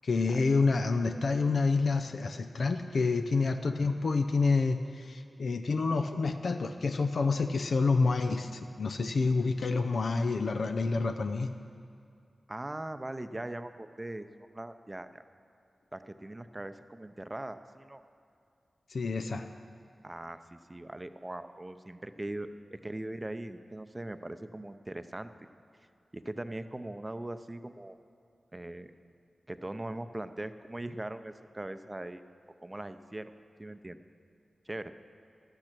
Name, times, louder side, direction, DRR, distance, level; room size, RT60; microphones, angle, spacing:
voice 1, 0.0-11.5 18.9-19.5, left 4 dB, 75° left, 7 dB, 0.4 m, -28 dB
voice 2, 12.5-15.2 15.9-18.0 20.0-25.3 26.1-28.0 28.5-28.9 29.5-32.2 32.6-33.3 33.6-34.0 34.7-34.9, right 1 dB, 25° right, 10 dB, 0.6 m, -40 dB
12.5 x 9.0 x 6.0 m, 2.4 s
cardioid pair, 50°, 0 cm